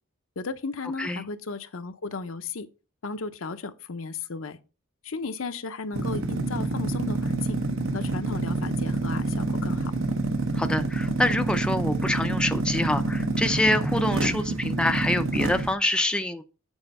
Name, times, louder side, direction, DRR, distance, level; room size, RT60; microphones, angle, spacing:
voice 1, 0.4-2.7 3.0-4.6 5.0-7.6 7.9-9.9, left 4 dB, 75° left, 0.7 m, -35 dB
sound 1, 5.9-15.7, right 2 dB, 70° right, 1.0 m, -27 dB
voice 2, 10.5-16.4, left 1 dB, 5° left, 0.4 m, -26 dB
8.1 x 4.4 x 5.3 m
head